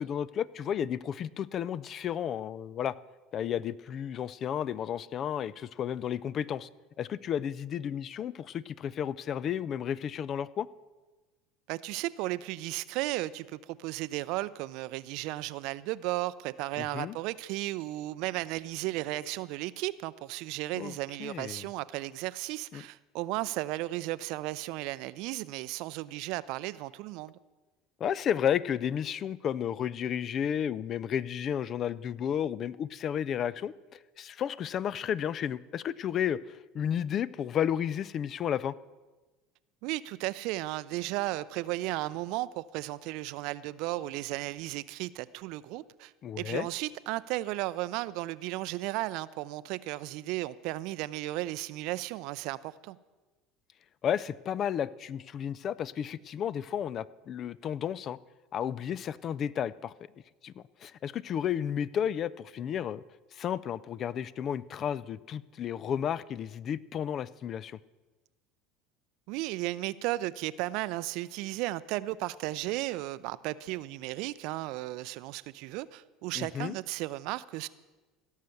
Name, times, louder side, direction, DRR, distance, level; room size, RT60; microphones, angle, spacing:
voice 1, 0.0-3.0 3.3-6.7 7.0-10.7 16.8-17.2 20.7-21.7 22.7-22.8 28.0-38.7 46.2-46.7 54.0-58.2 58.5-59.9 60.4-63.0 63.3-67.8 76.4-76.8, left 9 dB, 45° left, 20 dB, 0.4 m, -32 dB
voice 2, 11.7-27.3 39.8-53.0 69.3-77.7, right 18 dB, 65° right, 17 dB, 0.4 m, -35 dB
16.5 x 6.5 x 7.0 m, 1.2 s
hypercardioid pair, 80°, 0 cm